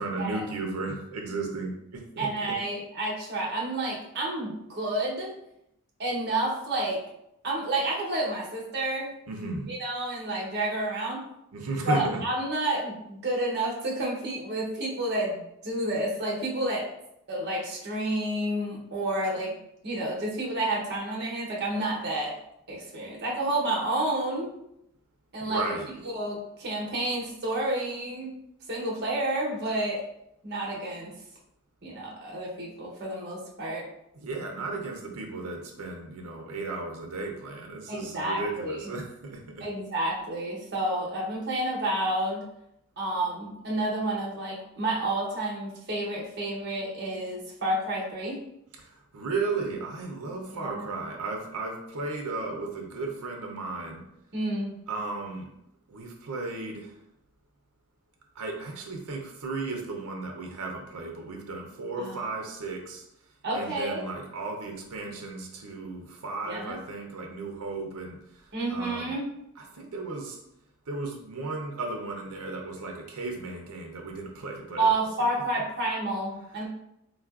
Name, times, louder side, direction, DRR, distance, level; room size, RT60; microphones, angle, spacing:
voice 1, 0.0-2.6 9.3-9.7 11.5-12.2 25.4-25.9 34.1-39.6 49.1-54.0 54.9-55.5 55.9-56.9 58.4-63.0 63.5-68.2 68.7-69.2 69.7-70.4 70.9-74.9, right 3 dB, 80° right, 2 dB, 0.5 m, -34 dB
voice 2, 2.2-5.3 6.0-7.0 7.4-9.1 9.7-11.2 11.8-16.9 17.3-19.6 19.8-22.4 22.7-24.5 25.3-25.6 26.0-28.3 28.7-30.0 30.4-31.1 31.8-33.9 37.9-38.9 39.6-42.5 43.0-48.4 50.5-51.1 54.3-54.7 62.0-62.2 63.4-64.0 66.5-66.8 68.5-69.3 74.8-76.7, right 1 dB, 45° right, -4 dB, 0.8 m, -30 dB
3.5 x 2.4 x 2.3 m, 0.79 s
head